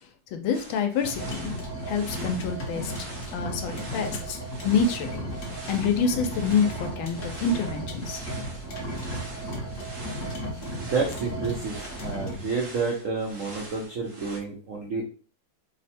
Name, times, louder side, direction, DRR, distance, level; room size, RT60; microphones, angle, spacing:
voice 1, 0.3-1.5 1.9-2.9 3.3-5.2 5.7-8.2, left 5 dB, 80° left, 5 dB, 1.4 m, -27 dB
sound 1, 0.5-14.4, right 2 dB, 45° right, 0.7 m, -44 dB
sound 2, 1.0-12.4, equal, 50° left, 1.0 m, -34 dB
voice 2, 10.8-11.8 12.0-15.0, right 4 dB, 85° right, 0 dB, 0.6 m, -29 dB
3.5 x 2.1 x 4.2 m, 0.39 s
omnidirectional pair, 2.2 m